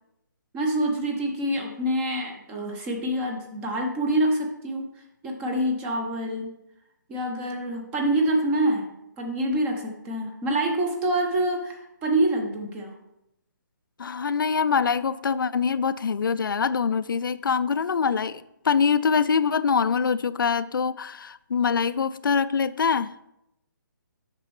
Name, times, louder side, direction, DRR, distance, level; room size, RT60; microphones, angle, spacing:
voice 1, 0.5-6.5 7.1-13.0, right 1 dB, 10° right, 3 dB, 0.6 m, -26 dB
voice 2, 14.0-23.1, left 6 dB, 80° left, 14 dB, 0.4 m, -24 dB
9.4 x 6.1 x 3.1 m, 0.85 s
hypercardioid pair, 165°, 11 cm